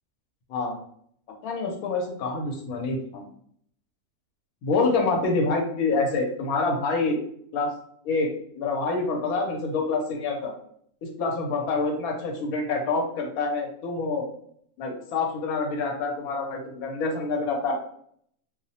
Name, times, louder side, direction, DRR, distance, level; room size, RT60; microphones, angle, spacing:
voice 1, 1.4-3.2 4.6-7.2 7.5-7.7 8.0-10.5 11.0-14.3 14.8-17.8, left 3 dB, 90° left, 2 dB, 1.1 m, -27 dB
2.5 x 2.0 x 2.7 m, 0.64 s
omnidirectional pair, 1.5 m